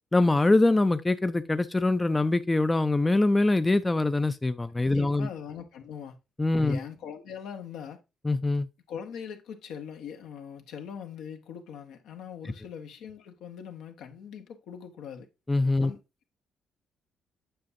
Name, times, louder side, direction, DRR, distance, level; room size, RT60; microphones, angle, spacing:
voice 1, 0.1-5.3 6.4-6.8 8.2-8.7 15.5-15.9, left 2 dB, 15° left, 0.4 m, -23 dB
voice 2, 4.9-6.2 6.6-8.0 8.9-15.3 15.8-16.0, left 7 dB, 80° left, 0.9 m, -41 dB
7.6 x 5.7 x 2.6 m
supercardioid pair, 70°, 0 cm